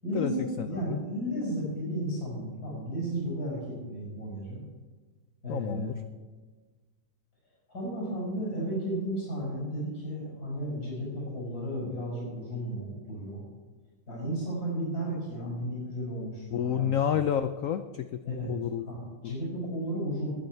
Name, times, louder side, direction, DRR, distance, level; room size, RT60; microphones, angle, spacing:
voice 1, 0.0-4.6 5.4-5.9 7.7-13.4 14.1-17.2 18.2-18.5 18.9-20.3, right 1 dB, 50° left, -5 dB, 6.1 m, -34 dB
voice 2, 0.6-1.0 5.5-5.9 16.5-17.8 18.3-18.9 19.2-19.3, left 9 dB, 80° left, 10 dB, 0.7 m, -29 dB
19.5 x 9.6 x 4.6 m, 1.3 s
omnidirectional pair, 2.1 m